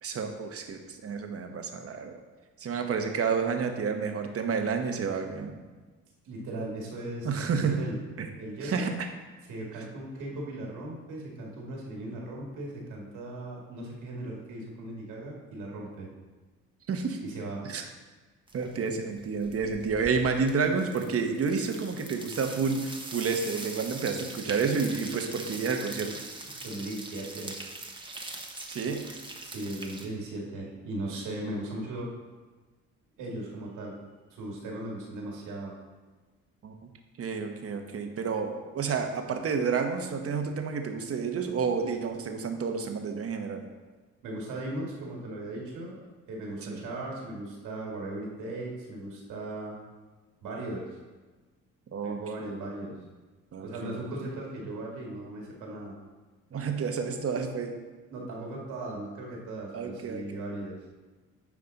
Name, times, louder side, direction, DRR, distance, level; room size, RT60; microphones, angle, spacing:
voice 1, 0.0-2.1 2.6-5.5 7.2-7.8 8.2-8.3 8.6-9.1 16.9-17.2 17.6-17.8 18.5-26.2 28.7-29.0 36.6-36.7 37.2-43.7 46.6-46.8 51.9-52.9 53.5-54.1 56.5-57.7 59.7-60.3, right 5 dB, 50° right, 5 dB, 1.1 m, -30 dB
voice 2, 6.2-7.3 7.5-7.9 8.4-8.9 9.5-16.1 17.2-17.6 26.5-27.6 29.4-32.1 33.2-34.0 34.3-35.7 44.2-46.0 46.3-49.8 50.4-50.9 52.0-52.9 53.6-55.9 58.1-60.8, right 1 dB, 85° right, -2 dB, 2.2 m, -37 dB
sound 1, 18.5-18.9 19.1-30.1, right 2 dB, 15° right, 1.1 m, -42 dB
9.5 x 5.2 x 4.0 m, 1.3 s
cardioid pair, 90°, 30 cm